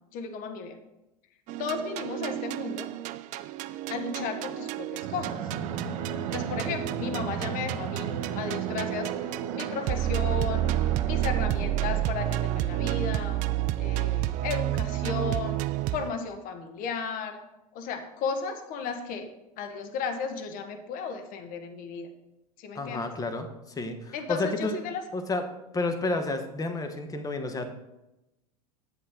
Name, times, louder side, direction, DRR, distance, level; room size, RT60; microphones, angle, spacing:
voice 1, 0.1-0.8 1.6-2.9 3.9-5.4 5.8-5.9 6.3-9.1 9.5-10.7 11.0-13.4 13.8-17.4 17.7-19.3 19.6-22.1 22.6-23.1 24.1-25.0, left 5 dB, 45° left, 7 dB, 1.2 m, -34 dB
sound 1, 1.5-16.1, right 14 dB, 40° right, 0.4 m, -30 dB
Fixed-wing aircraft airplane, 5.0-12.1, right 7 dB, 65° right, 1.4 m, -35 dB
voice 2, 22.7-24.8 25.1-25.4 25.7-27.7, left 2 dB, 20° left, 7 dB, 1.1 m, -30 dB
8.3 x 7.8 x 3.7 m, 0.94 s
hypercardioid pair, 90°, 19 cm